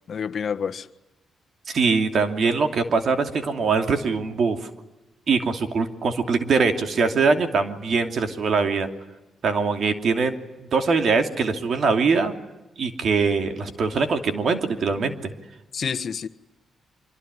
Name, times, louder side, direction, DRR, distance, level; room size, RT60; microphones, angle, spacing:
voice 1, 0.1-0.9 15.7-16.3, left 6 dB, 55° left, 1.4 m, -28 dB
voice 2, 1.7-4.7 5.3-8.9 9.4-10.4 10.7-12.3 12.8-15.3, right 4 dB, 60° right, 2.8 m, -22 dB
25.0 x 23.5 x 9.9 m
cardioid pair, 95°, 0 cm